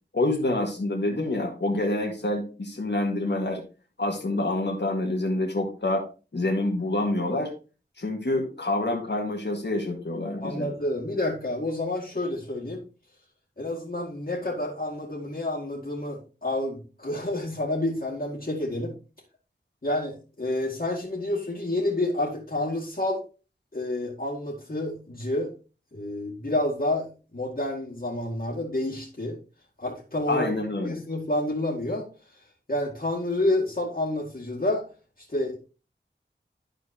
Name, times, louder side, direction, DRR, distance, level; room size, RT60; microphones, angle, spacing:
voice 1, 0.1-3.6 4.0-6.0 6.3-7.5 8.0-10.7 30.3-31.0, left 2 dB, 65° left, 0 dB, 1.9 m, -27 dB
voice 2, 10.4-12.8 13.6-18.9 19.8-23.2 23.7-25.5 25.9-27.1 27.3-29.4 29.8-30.5 30.8-32.1 32.7-34.8 35.3-35.6, left 1 dB, 50° left, -5 dB, 2.1 m, -29 dB
12.0 x 4.5 x 2.9 m, 0.33 s
wide cardioid pair, 50°, 19 cm